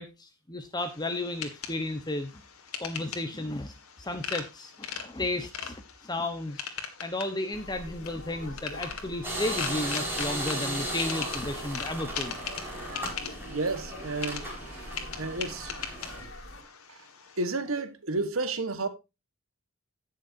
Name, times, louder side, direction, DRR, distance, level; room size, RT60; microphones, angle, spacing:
voice 1, 0.0-2.3 2.8-6.6 7.0-12.4, left 2 dB, 20° left, 1.0 m, -33 dB
sound 1, 0.8-17.5, left 7 dB, 90° left, 2.0 m, -41 dB
sound 2, 7.5-16.6, left 1 dB, 60° left, 2.8 m, -44 dB
sound 3, 9.2-16.2, right 1 dB, 10° right, 4.8 m, -36 dB
voice 2, 13.5-15.9 16.9-17.0 17.4-18.9, right 3 dB, 70° right, 1.4 m, -32 dB
17.0 x 6.6 x 2.7 m
head